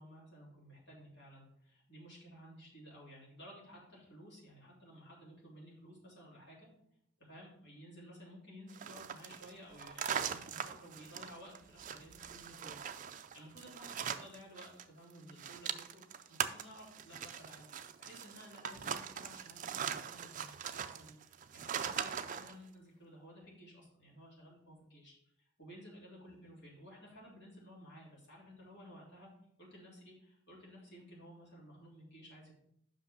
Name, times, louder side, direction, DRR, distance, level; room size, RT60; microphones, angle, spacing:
voice 1, 0.0-6.7 7.2-12.8 13.3-29.3 29.6-32.5, equal, 55° left, -6 dB, 3.5 m, -55 dB
sound 1, 8.7-14.8 15.1-22.5, right 8 dB, 40° right, 0.4 m, -41 dB
5.8 x 5.4 x 5.5 m, 0.73 s
head